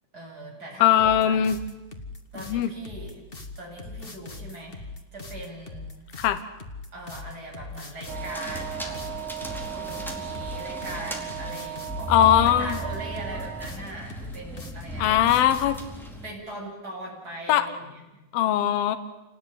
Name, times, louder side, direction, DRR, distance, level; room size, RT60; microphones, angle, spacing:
voice 1, 0.1-1.4 2.3-3.2 3.6-5.9 6.9-9.0 9.6-15.2 16.2-18.0 18.8-19.0, right 1 dB, 20° right, -2 dB, 8.5 m, -40 dB
voice 2, 0.8-1.6 2.4-2.7 6.2-6.4 12.1-12.8 15.0-15.8 17.5-17.7 18.3-19.0, left 11 dB, 70° left, 9 dB, 3.0 m, -20 dB
sound 1, 1.0-15.9, left 3 dB, 40° left, 0.7 m, -40 dB
Wind instrument woodwind instrument, 8.0-13.8, right 11 dB, 75° right, 3.1 m, -37 dB
sound 2, 8.1-16.3, equal, ahead, 3.6 m, -37 dB
28.5 x 19.5 x 9.9 m, 1.0 s
omnidirectional pair, 4.6 m